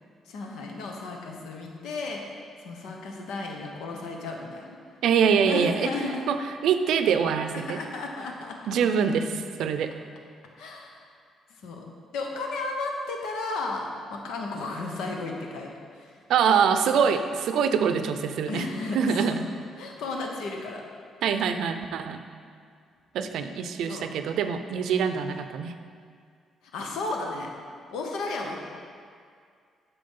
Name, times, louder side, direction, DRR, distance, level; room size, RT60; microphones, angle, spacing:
voice 1, 0.3-4.8 5.4-6.2 7.6-8.8 10.6-11.0 11.5-11.9 12.1-16.2 18.5-19.2 19.8-20.8 23.9-24.1 26.7-27.5 27.9-28.6, left 3 dB, 85° left, 1 dB, 1.0 m, -34 dB
voice 2, 5.0-5.9 6.3-7.8 8.7-9.9 16.3-18.7 18.9-19.4 21.2-22.2 23.1-25.7, right 7 dB, 80° right, 8 dB, 0.5 m, -24 dB
7.7 x 6.0 x 5.5 m, 2.2 s
cardioid pair, 90°, 0 cm